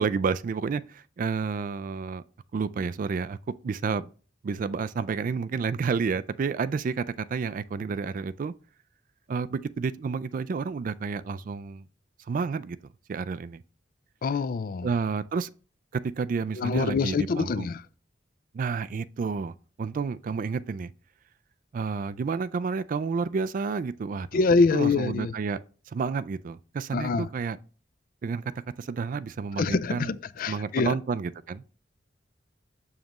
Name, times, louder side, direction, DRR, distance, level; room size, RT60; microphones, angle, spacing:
voice 1, 0.0-2.2 2.5-3.4 3.6-4.1 4.4-8.5 9.3-11.8 12.3-12.8 13.1-13.6 14.8-15.5 16.0-17.7 18.5-20.9 21.7-24.4 24.7-25.6 25.9-27.6 28.2-28.5 28.8-30.1 30.5-31.6, right 5 dB, 45° right, 0.3 m, -30 dB
voice 2, 14.2-14.9 16.6-17.8 24.3-25.3 26.9-27.3 29.6-30.9, left 4 dB, 50° left, 0.4 m, -25 dB
7.2 x 6.4 x 3.0 m
head